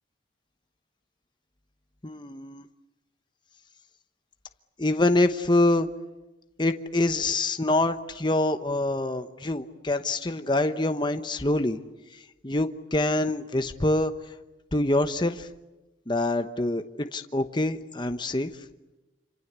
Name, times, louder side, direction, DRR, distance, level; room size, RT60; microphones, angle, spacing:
voice 1, 2.0-2.7 4.8-5.9 6.6-11.8 12.4-14.1 14.7-15.5 16.1-18.5, left 2 dB, 25° left, 8 dB, 1.0 m, -25 dB
27.5 x 26.0 x 8.2 m, 1.0 s
head